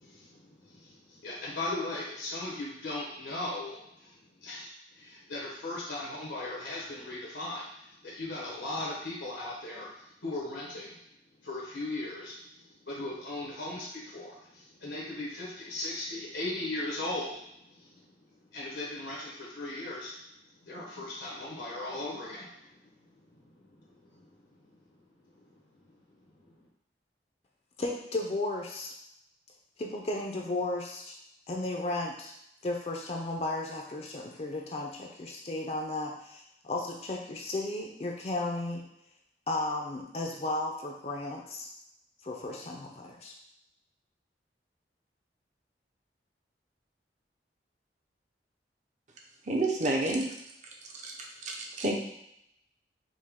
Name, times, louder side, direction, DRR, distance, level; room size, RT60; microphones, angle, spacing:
voice 1, 0.0-11.0 11.4-20.2 20.6-26.7, left 2 dB, 90° left, -5 dB, 1.1 m, -39 dB
voice 2, 27.8-28.9 29.8-31.2 31.5-32.3 32.6-38.9 39.5-41.7 42.2-43.3, left 2 dB, 35° left, 1 dB, 0.5 m, -34 dB
voice 3, 49.4-50.3 51.0-51.1 51.4-52.0, right 2 dB, 45° right, 0 dB, 0.7 m, -29 dB
5.3 x 2.2 x 3.6 m, 0.78 s
head